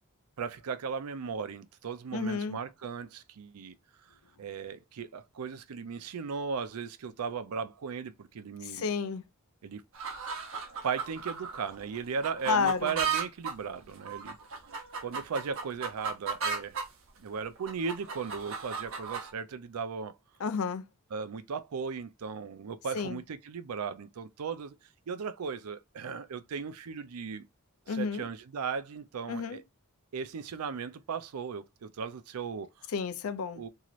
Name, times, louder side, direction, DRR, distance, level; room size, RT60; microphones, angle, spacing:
voice 1, 0.4-3.7 4.4-8.9 9.6-9.8 10.8-14.4 15.0-16.8 17.2-20.2 21.1-24.8 25.1-27.4 27.9-29.6 30.1-32.9 33.5-33.7, right 6 dB, 90° right, 0.5 m, -37 dB
voice 2, 2.1-2.6 8.6-9.2 12.5-12.9 20.4-20.9 22.9-23.2 27.9-28.3 29.3-29.6 32.9-33.6, left 5 dB, 70° left, 0.5 m, -31 dB
sound 1, 9.9-16.9 17.3-19.3, right 6 dB, 65° right, 0.8 m, -36 dB
3.0 x 2.8 x 2.4 m
head